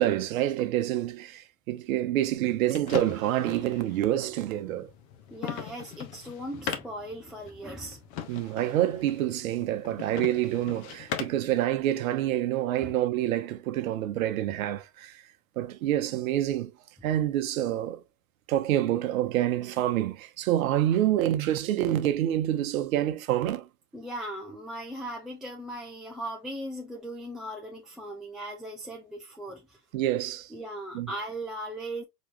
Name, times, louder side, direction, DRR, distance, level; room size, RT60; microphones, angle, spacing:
voice 1, 0.0-4.9 8.3-15.2 15.6-16.7 17.0-18.0 18.5-23.7 29.9-30.5 30.9-31.1, right 13 dB, 55° right, 0.9 m, -27 dB
sound 1, 2.3-11.5, left 9 dB, 40° left, 1.0 m, -40 dB
voice 2, 5.3-8.0 12.8-12.9 23.9-29.8 30.5-32.0, right 1 dB, ahead, 0.6 m, -38 dB
4.6 x 3.1 x 2.5 m
hypercardioid pair, 95°, 48 cm